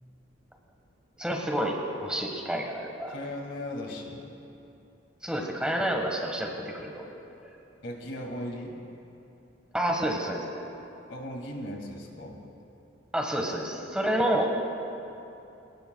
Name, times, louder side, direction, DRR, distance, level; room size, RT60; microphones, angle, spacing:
voice 1, 1.2-3.1 5.2-7.1 9.7-10.7 13.1-14.6, right 1 dB, 5° right, 0 dB, 1.4 m, -29 dB
voice 2, 3.1-4.2 7.8-8.8 11.1-12.4, left 1 dB, 65° left, 1 dB, 2.3 m, -37 dB
26.5 x 18.0 x 2.3 m, 2.8 s
head